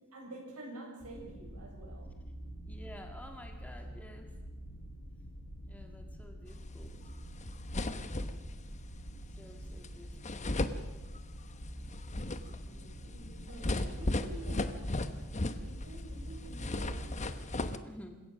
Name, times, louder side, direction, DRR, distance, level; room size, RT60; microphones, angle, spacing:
voice 1, 0.1-2.1 12.6-15.0 15.6-17.3, right 2 dB, 75° right, 0 dB, 7.2 m, -49 dB
sound 1, 1.0-17.2, equal, 60° left, 4.5 m, -46 dB
voice 2, 2.7-4.3 5.6-7.0 9.4-10.5 17.8-18.2, equal, 5° left, 4 dB, 2.0 m, -51 dB
sound 2, 7.1-7.2 7.4-8.6 9.8-9.9 10.2-11.4 11.8-16.0 16.3-17.8, left 2 dB, 30° left, 1.0 m, -35 dB
28.0 x 17.0 x 6.4 m, 1.2 s
head